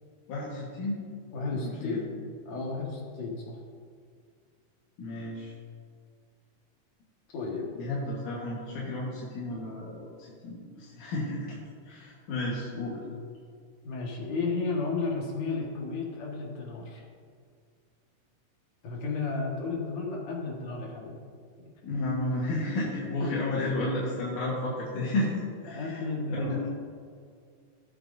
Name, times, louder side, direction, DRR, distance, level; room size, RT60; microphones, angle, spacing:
voice 1, 0.3-1.0 1.5-2.0 5.0-5.5 7.8-11.6 11.8-13.0 21.8-26.0 26.4-26.7, left 2 dB, 85° left, -6 dB, 3.0 m, -32 dB
voice 2, 1.3-2.1 2.5-3.6 7.3-7.7 13.8-17.0 18.8-21.2 23.2-23.3 23.6-23.7 25.7-26.7, left 3 dB, 65° left, -2 dB, 2.8 m, -33 dB
17.5 x 7.8 x 2.7 m, 2.1 s
omnidirectional pair, 3.5 m